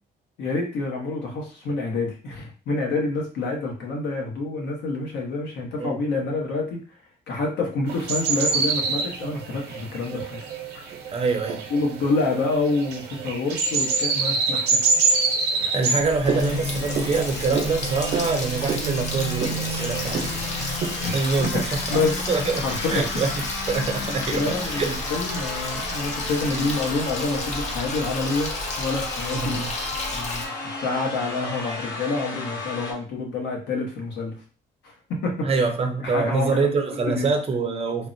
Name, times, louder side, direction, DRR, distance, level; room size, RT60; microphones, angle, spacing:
voice 1, 0.4-6.8 7.3-10.4 11.1-11.2 11.7-15.2 15.6-15.7 21.0-21.1 21.5-22.3 22.6-23.2 24.0-28.5 28.8-29.6 30.1-30.5 30.8-34.3 34.8-35.7 36.0-36.7 37.1-37.3, left 3 dB, 90° left, 1.0 m, -27 dB
sound 1, 7.9-21.4, right 4 dB, 65° right, 0.8 m, -27 dB
voice 2, 11.1-11.6 15.7-21.6 21.9-22.0 22.3-25.0 29.3-29.7 35.4-38.1, right 4 dB, 35° right, 0.5 m, -25 dB
Water tap faucet, 16.0-30.4, left 2 dB, 40° left, 0.7 m, -32 dB
sound 2, 16.2-32.9, left 2 dB, 65° left, 1.2 m, -33 dB
3.6 x 2.0 x 2.6 m
cardioid pair, 130°, 18 cm